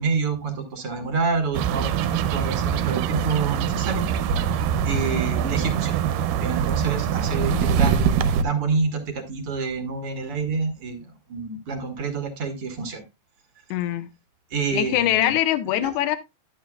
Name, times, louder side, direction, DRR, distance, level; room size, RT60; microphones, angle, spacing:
voice 1, 0.0-4.1 4.8-5.9 6.4-8.1 8.4-13.0 14.5-15.3 15.7-15.9, right 4 dB, 50° right, 2.1 m, -28 dB
sound 1, 1.5-8.4, right 8 dB, 85° right, 2.3 m, -23 dB
voice 2, 7.4-7.8 13.7-14.1 14.7-16.2, left 13 dB, 75° left, 2.2 m, -23 dB
11.5 x 8.9 x 2.3 m
omnidirectional pair, 3.9 m